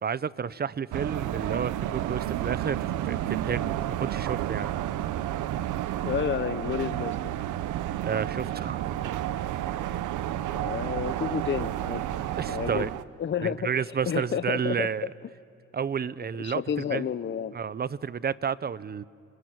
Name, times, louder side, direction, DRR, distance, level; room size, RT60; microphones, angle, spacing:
voice 1, 0.0-4.8 8.0-9.1 9.5-9.7 10.3-10.7 12.2-12.9 13.4-15.1 15.7-16.6 16.9-17.1 17.5-19.0, right 7 dB, 30° right, 18 dB, 0.7 m, -31 dB
sound 1, 0.9-13.0, right 12 dB, 85° right, 0.9 m, -31 dB
voice 2, 6.0-7.3 10.5-12.0 12.5-12.9 13.2-14.9 16.4-17.5, left 8 dB, 40° left, 14 dB, 0.8 m, -30 dB
29.0 x 20.5 x 9.6 m, 2.5 s
cardioid pair, 90°, 30 cm